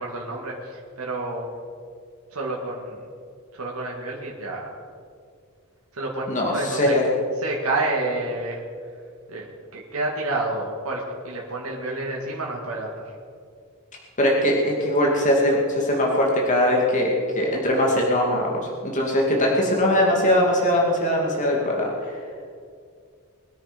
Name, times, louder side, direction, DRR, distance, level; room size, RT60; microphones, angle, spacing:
voice 1, 0.0-1.6 2.3-3.1 3.5-4.7 5.9-6.9 7.4-8.6 9.3-13.0, right 2 dB, 85° right, -2 dB, 2.2 m, -29 dB
voice 2, 6.3-7.0 14.2-21.9, left 1 dB, 35° left, -2 dB, 2.6 m, -21 dB
22.0 x 9.7 x 5.2 m, 2.2 s
head